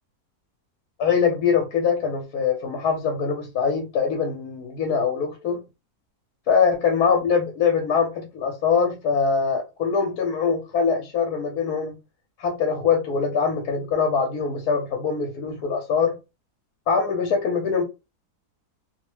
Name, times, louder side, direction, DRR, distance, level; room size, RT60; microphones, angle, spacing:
voice 1, 1.0-5.6 6.5-12.0 12.4-16.2 16.9-17.8, left 6 dB, 75° left, 1.2 m, -23 dB
2.8 x 2.1 x 3.1 m
omnidirectional pair, 1.7 m